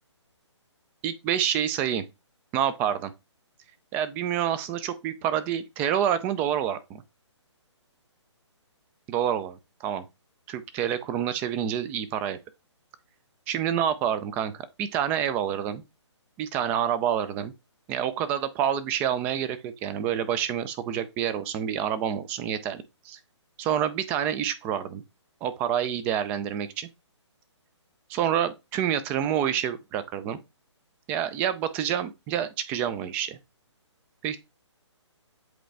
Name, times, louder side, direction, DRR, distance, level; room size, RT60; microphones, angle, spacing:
voice 1, 1.0-2.0 2.5-3.1 3.9-7.0 9.1-10.0 10.5-12.4 13.5-15.8 16.4-17.5 17.9-23.2 23.6-25.0 25.4-26.9 28.1-30.4 31.1-33.4 34.2-34.4, right 9 dB, 10° right, 0.3 m, -28 dB
7.8 x 3.8 x 3.3 m
hypercardioid pair, 155°, 15 cm